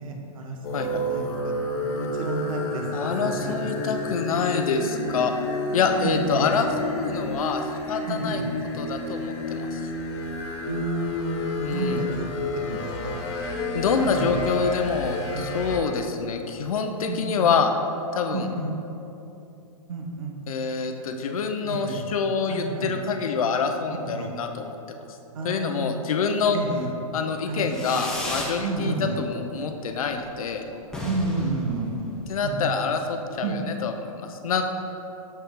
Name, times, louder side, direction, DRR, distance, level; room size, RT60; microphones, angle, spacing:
voice 1, 0.0-1.6 1.9-3.7 4.0-4.1 6.0-6.5 8.1-8.5 10.7-12.3 12.7-13.1 14.0-14.4 15.3-15.5 17.1-17.5 18.3-18.8 19.9-20.4 21.6-22.0 22.5-22.9 24.0-24.3 25.3-25.9 26.5-26.9 27.4-27.6 28.6-29.2 31.0-32.1 32.4-32.6 33.4-33.6, right 3 dB, 65° right, 2 dB, 1.1 m, -31 dB
sound 1, 0.6-15.8, left 2 dB, 50° left, 1.0 m, -30 dB
voice 2, 2.9-5.3 5.7-8.4 8.8-9.8 11.6-12.0 13.7-17.7 18.1-18.5 20.5-25.2 25.4-26.6 27.1-30.6 32.3-34.6, left 5 dB, 70° left, 5 dB, 0.8 m, -26 dB
Fireworks, 27.7-28.6 29.0-29.5 29.8-29.9 30.1-30.2 30.5-30.6 30.8-32.5, left 1 dB, 5° left, 0.9 m, -34 dB
7.0 x 5.7 x 3.7 m, 2.9 s
hypercardioid pair, 140°, 19 cm